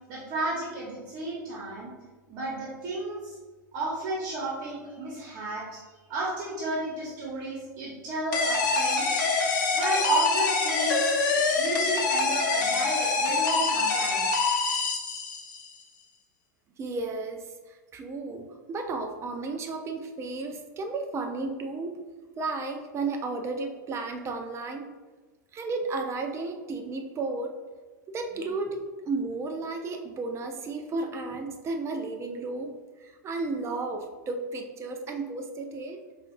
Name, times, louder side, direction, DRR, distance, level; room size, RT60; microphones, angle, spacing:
voice 1, 0.1-1.9 2.3-3.3 3.7-5.8 6.1-9.1 9.7-11.2 11.6-14.4, right 2 dB, 50° right, -4 dB, 1.1 m, -32 dB
sound 1, 8.3-15.7, left 4 dB, 70° left, 0.7 m, -25 dB
voice 2, 16.8-22.0 22.4-24.9 25.5-27.5 28.1-32.8 33.0-36.0, right 3 dB, 25° right, 5 dB, 0.5 m, -33 dB
5.2 x 2.5 x 2.6 m, 1.3 s
hypercardioid pair, 100°, 10 cm